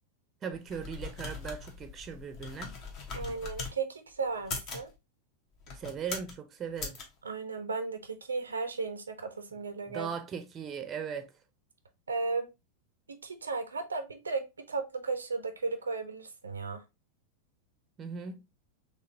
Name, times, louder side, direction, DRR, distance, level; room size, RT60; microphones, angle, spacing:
voice 1, 0.4-2.8 5.7-7.0 9.9-11.3 18.0-18.4, right 7 dB, 25° right, 0.6 m, -38 dB
sound 1, 0.5-3.7 4.3-4.9 5.6-6.4 6.8-7.0, left 4 dB, 40° left, 1.0 m, -40 dB
voice 2, 3.1-4.9 7.2-10.1 12.1-12.5 13.1-16.8, right 4 dB, 75° right, 0.5 m, -35 dB
3.8 x 2.9 x 2.7 m
figure-of-eight pair, 90°, 0 cm